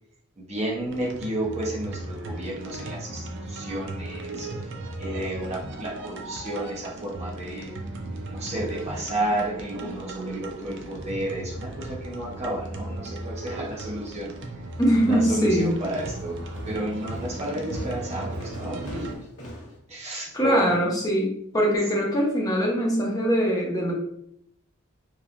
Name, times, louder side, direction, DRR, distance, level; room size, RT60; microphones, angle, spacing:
voice 1, 0.4-4.5 5.0-7.7 8.2-14.3 15.1-16.4 16.6-19.5 19.9-20.8, right 1 dB, 30° right, -3 dB, 0.7 m, -32 dB
sound 1, 0.9-19.2, right 2 dB, 55° right, 0.4 m, -36 dB
voice 2, 14.8-15.7 20.3-23.9, equal, 15° left, -2 dB, 0.6 m, -22 dB
sound 2, 14.9-19.8, equal, 80° left, 0.7 m, -41 dB
3.0 x 2.2 x 2.5 m, 0.71 s
head